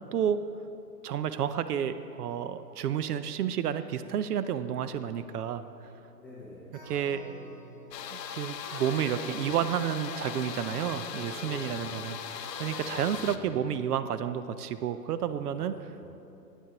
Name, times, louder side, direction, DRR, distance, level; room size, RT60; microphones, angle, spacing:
voice 1, 1.0-5.6 6.9-7.2 8.1-15.7, right 9 dB, 70° right, 12 dB, 0.5 m, -31 dB
voice 2, 5.0-5.7 6.2-6.7 11.4-11.9 15.1-16.1, left 2 dB, 5° left, -8 dB, 0.6 m, -48 dB
sound 1, 6.7-14.4, right 1 dB, 25° right, 2.0 m, -48 dB
sound 2, 7.9-13.4, left 8 dB, 80° left, 0.7 m, -39 dB
10.0 x 9.1 x 2.9 m, 2.8 s
hypercardioid pair, 145°, 49 cm